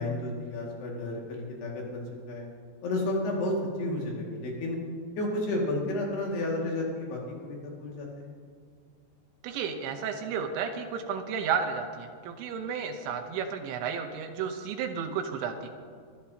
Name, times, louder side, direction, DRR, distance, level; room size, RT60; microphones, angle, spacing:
voice 1, 0.0-2.5 2.8-4.8 5.2-8.4, left 1 dB, 60° left, -2 dB, 3.9 m, -32 dB
voice 2, 9.4-15.7, right 6 dB, 80° right, 5 dB, 3.0 m, -32 dB
24.0 x 13.0 x 2.8 m, 2.1 s
omnidirectional pair, 5.6 m